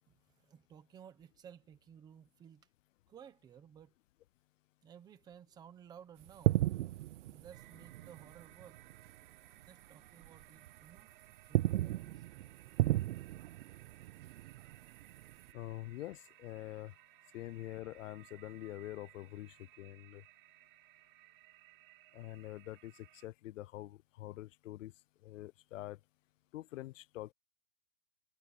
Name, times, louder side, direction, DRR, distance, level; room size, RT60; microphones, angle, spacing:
voice 1, 0.1-2.7 3.1-3.9 4.8-6.7 7.2-8.8 9.6-11.1 11.4-12.5, right 8 dB, 10° right, 1.0 m, -56 dB
sound 1, 6.2-9.2 9.5-9.7 10.2-11.0 11.3-15.5, right 15 dB, 70° right, 0.6 m, -35 dB
sound 2, 7.5-23.3, right 19 dB, 40° right, 3.4 m, -62 dB
voice 2, 15.5-16.9 17.3-20.2 22.1-24.9 25.2-26.0 26.5-27.3, left 16 dB, 85° left, 0.6 m, -45 dB
supercardioid pair, 180°, 37 cm